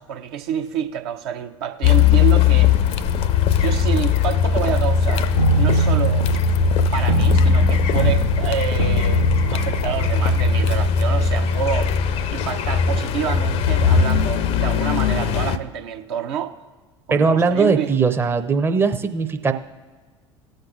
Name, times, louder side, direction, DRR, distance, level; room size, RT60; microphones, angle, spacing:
voice 1, 0.0-2.7 3.5-5.3 5.5-6.2 6.9-9.3 9.5-11.9 12.3-16.5 17.1-17.9, right 8 dB, 60° right, 5 dB, 0.7 m, -28 dB
Car, 1.8-15.6, left 6 dB, 45° left, 0.5 m, -19 dB
sound 1, 5.4-10.9, right 1 dB, 85° left, 0.7 m, -23 dB
voice 2, 17.1-19.5, right 5 dB, 15° right, 6 dB, 0.6 m, -19 dB
19.0 x 6.5 x 2.4 m, 1.4 s
figure-of-eight pair, 65°, 15 cm